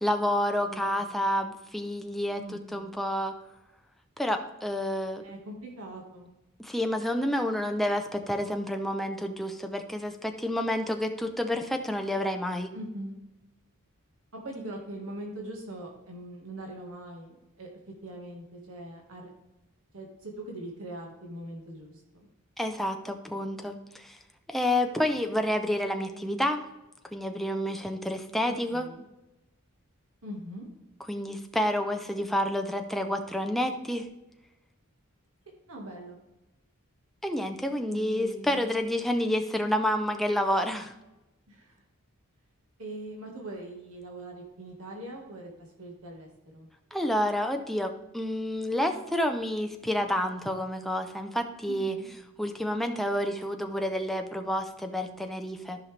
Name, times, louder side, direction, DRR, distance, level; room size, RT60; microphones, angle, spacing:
voice 1, 0.0-3.3 4.2-5.2 6.6-12.7 22.6-24.2 24.5-26.6 27.1-28.9 31.1-34.1 37.2-40.9 46.9-52.0 52.4-55.8, left 1 dB, ahead, 4 dB, 0.7 m, -29 dB
voice 2, 0.7-1.0 2.4-2.9 5.2-6.3 12.7-13.2 14.3-17.7 18.0-19.3 19.9-22.3 25.9-26.4 28.5-29.0 30.2-30.7 35.7-36.2 37.9-38.8 41.5-41.8 42.8-45.5 45.8-46.7 51.7-52.1, right 1 dB, 70° right, 0 dB, 1.7 m, -42 dB
13.5 x 5.6 x 3.3 m, 1.0 s
head